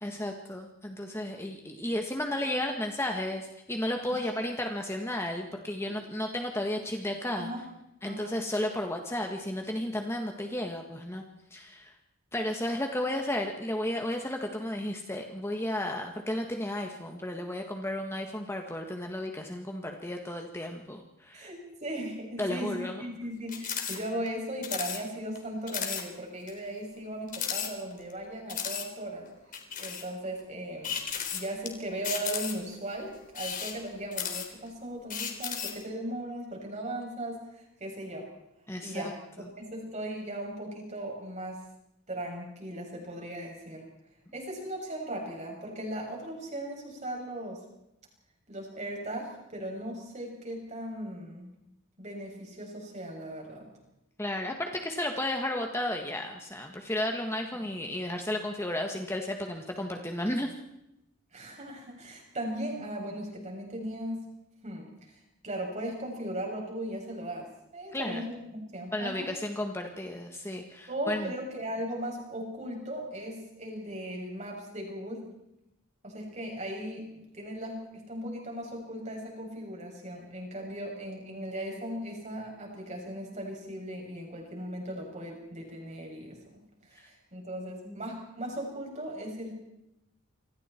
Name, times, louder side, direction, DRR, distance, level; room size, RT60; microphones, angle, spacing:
voice 1, 0.0-7.5 8.0-11.2 11.5-11.9 12.3-21.5 22.4-23.0 38.7-39.1 39.4-39.5 54.2-60.5 67.9-68.2 68.9-71.3 87.9-88.0, left 1 dB, 10° left, 3 dB, 1.7 m, -33 dB
voice 2, 8.0-8.3 21.3-29.3 29.8-31.1 31.3-38.3 38.8-41.6 42.1-43.9 44.3-47.6 48.5-51.5 52.0-53.7 61.3-64.2 64.6-69.3 70.9-75.2 76.0-86.6 86.9-89.5, right 1 dB, 35° right, 0 dB, 7.5 m, -38 dB
sound 1, 23.5-24.0 24.3-24.4 24.6-25.0 25.4-25.5 25.7-26.0 26.5-26.6 27.3-28.1 28.5-28.9 29.5-30.1 30.8-31.7 32.0-32.7 33.3-34.7 35.1-35.8, left 8 dB, 40° left, 3.8 m, -34 dB
28.0 x 25.0 x 4.6 m, 0.87 s
head